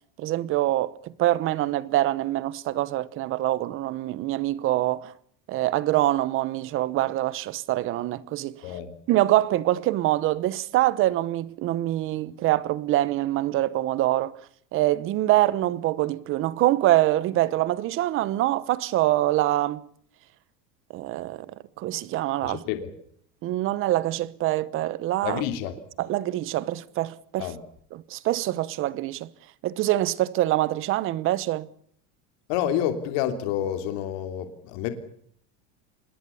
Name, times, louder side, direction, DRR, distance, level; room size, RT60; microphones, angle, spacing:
voice 1, 0.2-5.1 5.5-8.6 9.1-14.4 14.7-19.8 20.9-21.5 21.8-22.6 23.4-25.4 26.0-27.5 27.9-29.3 29.6-31.7, right 15 dB, 35° right, 1.0 m, -25 dB
voice 2, 22.4-22.9 25.2-25.7 27.4-27.6 32.5-34.9, left 10 dB, 60° left, 3.1 m, -28 dB
26.5 x 21.0 x 7.1 m
cardioid pair, 160°, 35 cm